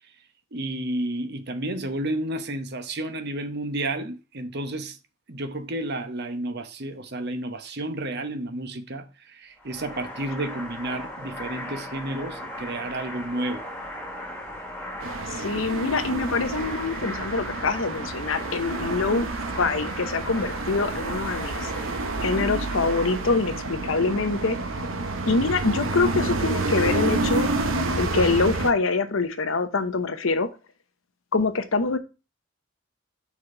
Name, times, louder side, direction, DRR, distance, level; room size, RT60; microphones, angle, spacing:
voice 1, 0.5-5.0 5.3-13.7, right 1 dB, 55° right, 0.9 m, -31 dB
industrial ambience, 9.6-23.2, left 1 dB, 5° left, 1.6 m, -38 dB
sound 1, 15.0-28.7, right 2 dB, 80° right, 0.9 m, -29 dB
voice 2, 15.3-19.3 19.6-21.7 22.2-24.6 25.3-27.5 28.0-30.5 31.3-32.0, left 3 dB, 80° left, 0.9 m, -25 dB
5.8 x 4.2 x 4.4 m
head